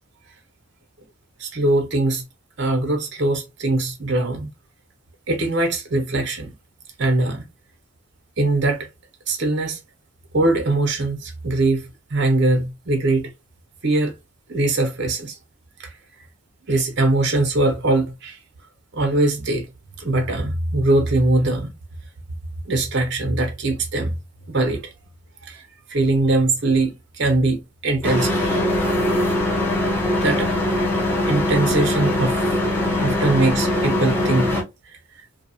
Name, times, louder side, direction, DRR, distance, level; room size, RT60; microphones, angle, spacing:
voice 1, 1.4-2.2 2.6-4.5 5.3-6.5 7.0-7.4 8.4-8.9 9.3-9.8 10.3-13.3 13.8-14.1 14.5-15.4 15.8-15.9 16.7-18.4 18.9-19.7 20.0-21.7 22.6-24.1 24.5-24.8 25.4-28.6 30.2-30.5 31.3-32.6 33.0-34.5 34.8-35.0, right 2 dB, 55° right, 0.7 m, -21 dB
sound 1, 28.0-34.6, left 1 dB, 10° left, 0.7 m, -21 dB
2.6 x 2.3 x 2.7 m
head